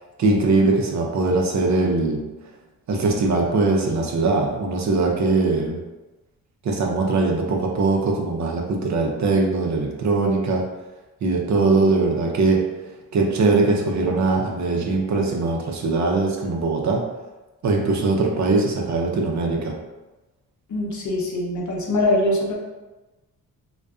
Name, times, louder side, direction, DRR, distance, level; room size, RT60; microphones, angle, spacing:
voice 1, 0.2-2.2 2.9-5.8 6.6-10.6 11.2-12.6 13.1-17.0 17.6-19.7, right 3 dB, 50° right, 0 dB, 0.5 m, -21 dB
voice 2, 20.7-22.5, left 1 dB, 50° left, -2 dB, 0.7 m, -22 dB
2.5 x 2.2 x 2.3 m, 1.1 s
cardioid pair, 70°, 37 cm